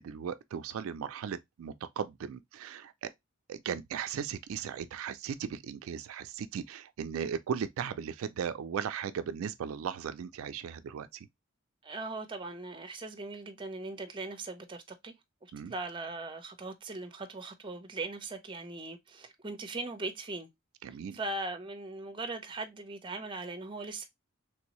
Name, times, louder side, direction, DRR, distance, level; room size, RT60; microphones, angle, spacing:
voice 1, 0.0-3.1 3.5-11.3 15.5-15.7 20.8-21.2, right 7 dB, 80° right, 0.3 m, -37 dB
voice 2, 11.8-15.1 15.7-20.5 21.1-24.1, right 2 dB, 25° right, 0.6 m, -39 dB
3.4 x 2.7 x 2.9 m
head